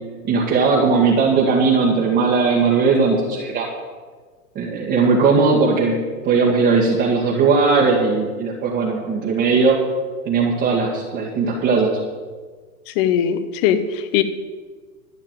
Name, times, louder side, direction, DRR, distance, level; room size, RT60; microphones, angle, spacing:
voice 1, 0.3-3.7 4.6-9.8 10.3-11.9, right 4 dB, 25° right, -4 dB, 1.7 m, -18 dB
voice 2, 12.9-14.2, left 9 dB, 40° left, 12 dB, 1.0 m, -20 dB
12.5 x 5.8 x 9.1 m, 1.4 s
hypercardioid pair, 130°, 45 cm